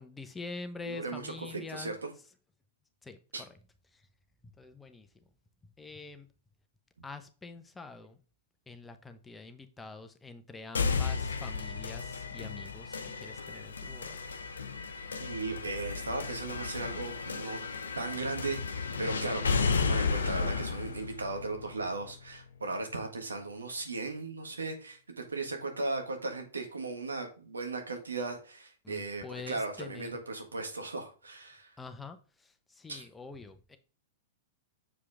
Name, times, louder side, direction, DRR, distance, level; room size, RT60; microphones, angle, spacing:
voice 1, 0.0-2.0 3.0-3.5 3.9-4.0 4.4-5.1 5.8-6.3 7.0-8.2 8.7-14.1 28.8-30.1 31.8-33.8, left 3 dB, 10° left, 0.9 m, -45 dB
voice 2, 0.9-2.1 3.3-3.4 15.2-17.6 18.0-31.7 32.9-33.1, right 3 dB, 80° right, 1.6 m, -37 dB
sound 1, 10.7-22.7, left 5 dB, 75° left, 0.8 m, -34 dB
7.1 x 4.9 x 3.5 m
figure-of-eight pair, 105°, 0 cm